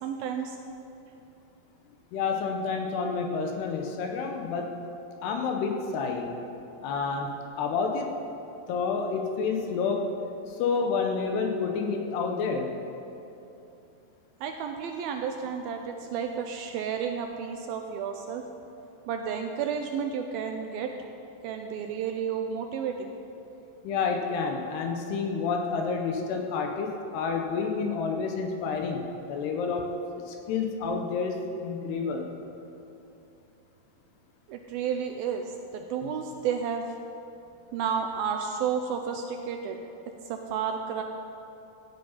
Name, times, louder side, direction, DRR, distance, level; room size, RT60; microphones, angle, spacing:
voice 1, 0.0-0.6 14.4-18.4 19.1-20.9 21.4-23.1 34.5-36.8 37.7-39.8 40.3-41.0, right 7 dB, 80° right, 4 dB, 2.2 m, -31 dB
voice 2, 2.1-4.8 5.2-6.3 6.8-7.3 7.6-8.1 8.7-10.1 10.5-12.7 23.8-29.9 30.2-32.3, left 5 dB, 80° left, 3 dB, 2.9 m, -29 dB
15.0 x 10.0 x 5.6 m, 2.8 s
omnidirectional pair, 4.8 m